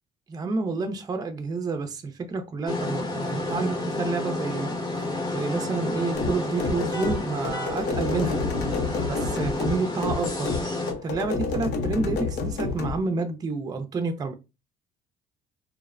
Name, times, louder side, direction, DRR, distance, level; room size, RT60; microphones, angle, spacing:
voice 1, 0.3-8.4 9.1-10.5 11.0-14.3, right 3 dB, 25° right, 0.4 m, -29 dB
sound 1, 2.7-10.9, left 2 dB, 20° left, 0.7 m, -30 dB
sound 2, 6.1-13.0, left 4 dB, 75° left, 0.6 m, -29 dB
3.1 x 2.0 x 2.3 m
cardioid pair, 110°, 17 cm